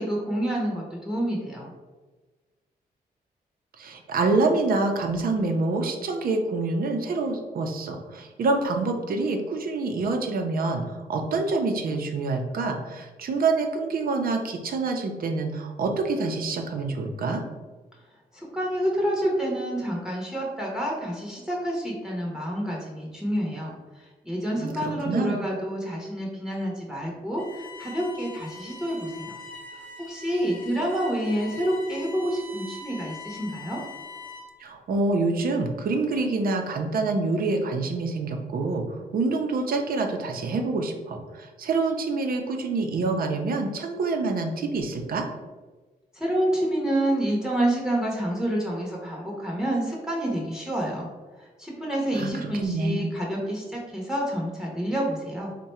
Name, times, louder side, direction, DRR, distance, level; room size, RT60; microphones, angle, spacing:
voice 1, 0.0-1.7 18.3-29.4 30.0-33.8 46.1-51.1 51.4-55.5, right 1 dB, 5° right, -3 dB, 0.8 m, -28 dB
voice 2, 3.8-17.4 24.6-25.4 34.6-45.3 52.1-53.1, right 3 dB, 65° right, 4 dB, 0.6 m, -26 dB
Bowed string instrument, 27.4-34.6, left 3 dB, 60° left, 0.8 m, -42 dB
3.6 x 2.2 x 4.2 m, 1.3 s
wide cardioid pair, 125°, 16 cm